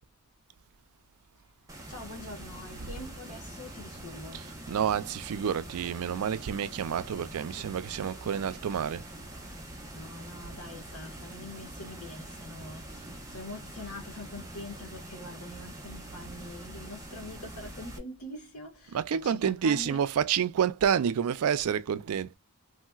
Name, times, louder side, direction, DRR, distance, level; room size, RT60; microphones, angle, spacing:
sound 1, 1.7-18.0, right 1 dB, 15° right, 0.7 m, -44 dB
voice 1, 1.9-4.5 9.9-20.0, left 2 dB, 70° left, 1.3 m, -44 dB
voice 2, 4.3-9.0 18.9-22.4, right 8 dB, 70° right, 0.4 m, -29 dB
3.2 x 2.8 x 2.2 m
head